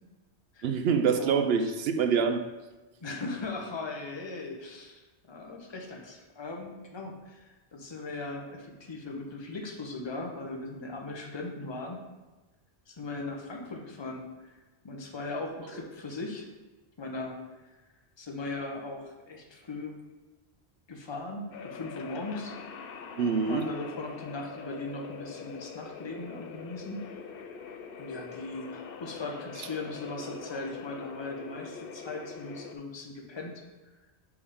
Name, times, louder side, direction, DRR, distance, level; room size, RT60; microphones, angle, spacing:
voice 1, 0.6-2.4 23.2-23.7, right 6 dB, 65° right, 8 dB, 0.7 m, -25 dB
voice 2, 1.1-1.7 3.0-12.0 12.9-14.6 14.8-16.5 17.0-17.4 18.2-20.0 20.9-22.5 23.4-27.0 28.0-33.5, left 2 dB, 25° left, 1 dB, 0.9 m, -38 dB
sound 1, 21.5-32.7, left 6 dB, 60° left, 0.7 m, -44 dB
6.9 x 4.8 x 3.6 m, 1.1 s
omnidirectional pair, 1.2 m